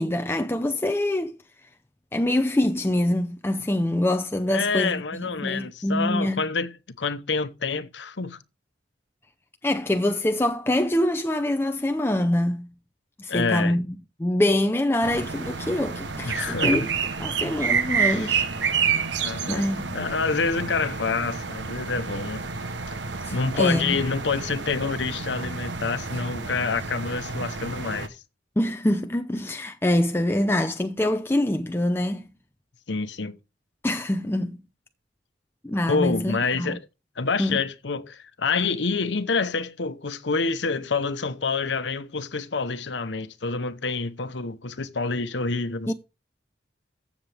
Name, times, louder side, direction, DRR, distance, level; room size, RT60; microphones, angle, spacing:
voice 1, 0.0-1.3 2.1-6.4 9.6-12.7 13.2-13.9 14.2-16.9 17.2-18.4 19.5-19.9 23.2-24.0 28.6-32.2 33.8-34.6 35.6-36.8 37.4-37.6 45.9-46.0, left 1 dB, 15° left, 0.5 m, -25 dB
voice 2, 4.5-8.4 13.3-13.8 16.2-16.9 18.0-18.4 19.2-22.4 23.3-28.2 32.9-33.4 35.9-36.8 37.2-45.9, left 4 dB, 85° left, 1.0 m, -27 dB
sound 1, 15.0-28.1, right 5 dB, 85° right, 1.1 m, -29 dB
14.5 x 7.0 x 3.5 m
head